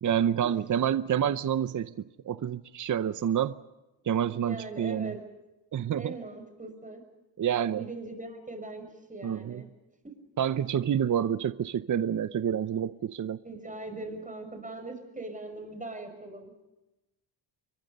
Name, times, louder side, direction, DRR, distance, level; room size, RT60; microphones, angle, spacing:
voice 1, 0.0-3.6 4.0-5.1 5.7-6.1 7.4-7.8 9.2-9.6 10.4-13.4, right 9 dB, 40° right, 0.7 m, -28 dB
voice 2, 4.3-5.2 6.0-7.0 7.8-9.7 11.0-11.1 13.4-16.5, right 2 dB, 15° right, 6.4 m, -41 dB
29.0 x 24.0 x 5.4 m
cardioid pair, 115°, 47 cm